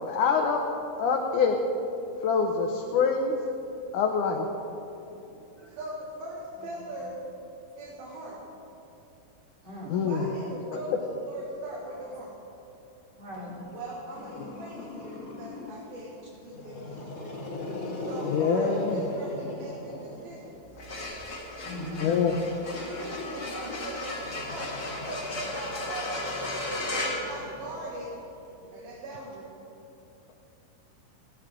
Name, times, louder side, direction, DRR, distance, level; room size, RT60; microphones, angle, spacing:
voice 1, 0.0-0.6 1.0-1.6 2.2-3.4 3.9-4.5 9.9-10.3 18.2-19.0 22.0-22.4, left 5 dB, 70° left, 1 dB, 2.3 m, -25 dB
voice 2, 5.1-5.8 9.6-9.9 13.2-13.6 21.6-22.1, left 1 dB, 30° right, -6 dB, 4.2 m, -40 dB
voice 3, 5.7-7.2 7.8-8.4 10.0-12.4 13.7-17.4 18.1-20.6 22.7-24.7 25.1-26.2 26.7-28.1 28.6-29.5, right 1 dB, 80° right, -5 dB, 3.8 m, -40 dB
Growling, 14.2-15.9 16.4-20.6 21.6-28.1, left 2 dB, 45° left, 2.8 m, -40 dB
sound 1, 20.6-28.1, left 2 dB, 30° left, 2.5 m, -36 dB
29.5 x 11.0 x 3.8 m, 2.9 s
omnidirectional pair, 4.1 m